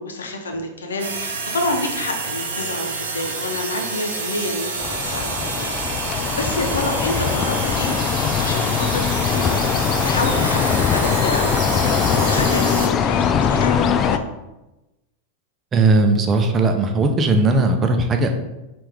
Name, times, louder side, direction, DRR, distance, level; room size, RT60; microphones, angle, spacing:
voice 1, 0.0-5.7 6.0-9.7 10.0-14.3, left 2 dB, 85° left, 3 dB, 0.7 m, -28 dB
sound 1, 1.0-12.9, right 4 dB, 80° right, 0.8 m, -28 dB
sound 2, 4.8-14.2, left 7 dB, 35° left, 0.3 m, -21 dB
voice 2, 15.7-18.3, right 2 dB, 25° right, 5 dB, 0.6 m, -17 dB
5.4 x 2.5 x 3.4 m, 0.99 s
hypercardioid pair, 100°, 0 cm